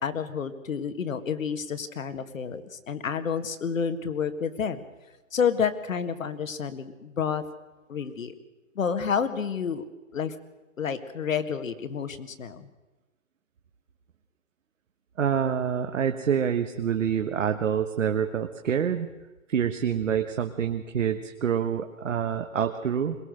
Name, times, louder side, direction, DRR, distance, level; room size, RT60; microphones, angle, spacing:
voice 1, 0.0-4.8 5.3-7.4 7.9-8.3 8.8-9.9 10.1-10.4 10.8-12.7, left 6 dB, 70° left, 10 dB, 2.0 m, -29 dB
voice 2, 15.2-19.1 19.5-23.2, right 8 dB, 65° right, 6 dB, 1.3 m, -26 dB
22.0 x 19.0 x 6.5 m, 1.1 s
hypercardioid pair, 165°, 41 cm